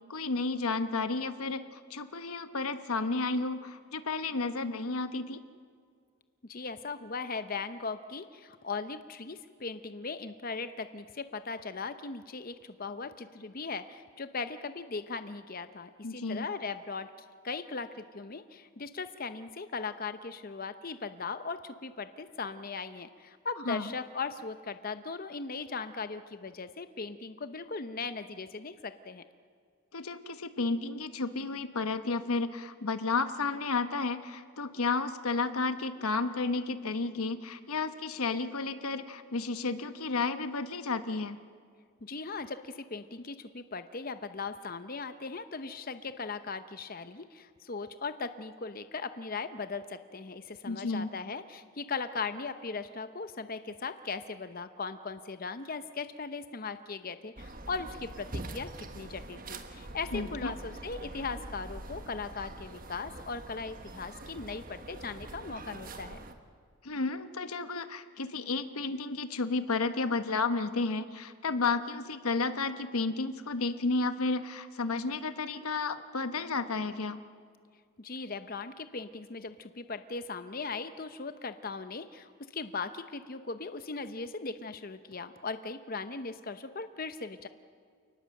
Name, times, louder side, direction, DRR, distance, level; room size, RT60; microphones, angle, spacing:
voice 1, 0.1-5.4 16.0-16.5 23.7-23.9 29.9-41.4 50.6-51.1 60.1-60.5 66.8-77.2, left 3 dB, 85° left, 10 dB, 1.2 m, -32 dB
voice 2, 6.5-17.1 17.4-29.2 42.0-66.2 78.0-87.5, left 4 dB, 40° left, 10 dB, 0.7 m, -38 dB
sound 1, 57.4-66.3, right 2 dB, 40° right, 1.4 m, -44 dB
28.5 x 19.5 x 7.7 m, 2.1 s
head